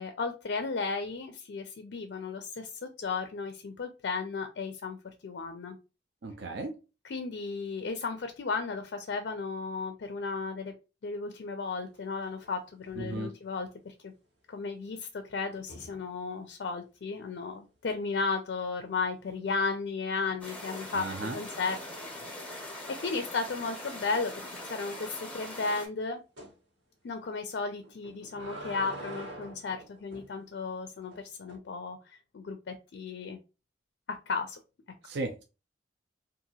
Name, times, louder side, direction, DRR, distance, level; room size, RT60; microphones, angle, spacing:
voice 1, 0.0-5.0 5.2-5.8 7.0-10.7 11.0-14.1 14.5-21.8 23.0-24.3 24.7-26.2 27.0-33.4 34.1-34.6, left 4 dB, 60° left, 7 dB, 0.4 m, -34 dB
voice 2, 6.2-6.7 13.0-13.3 20.9-21.4 35.0-35.4, right 2 dB, 60° right, 4 dB, 0.4 m, -35 dB
sound 1, 11.9-12.6 12.8-13.2 15.5-16.1 19.2-19.7 20.1-22.5 23.0-23.1 23.4-23.5 23.9-24.0 26.4-26.6 27.8-30.3 31.1-31.6, right 1 dB, 90° right, 1.3 m, -47 dB
sound 2, 20.4-25.9, left 1 dB, 5° left, 0.7 m, -42 dB
2.8 x 2.5 x 2.7 m, 0.30 s
head